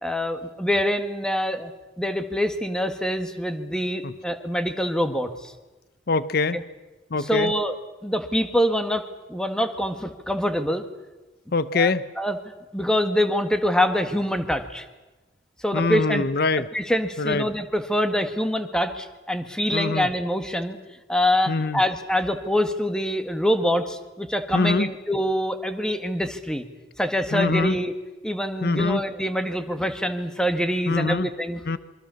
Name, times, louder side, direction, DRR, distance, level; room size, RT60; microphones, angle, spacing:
voice 1, 0.0-1.7 2.0-5.5 6.5-6.6 7.2-7.7 8.0-10.8 11.7-11.9 12.2-12.4 12.7-14.9 15.6-16.2 16.7-20.8 21.1-26.6 27.0-27.9 28.2-31.6, equal, 5° left, 8 dB, 1.7 m, -25 dB
voice 2, 6.1-6.6 7.1-7.5 11.5-12.1 15.7-16.7 17.2-17.5 19.7-20.1 21.5-21.8 24.5-24.9 27.3-27.8 28.6-29.0 30.9-31.3 31.7-31.8, left 3 dB, 55° left, 15 dB, 0.8 m, -23 dB
26.5 x 24.0 x 7.1 m, 1.1 s
head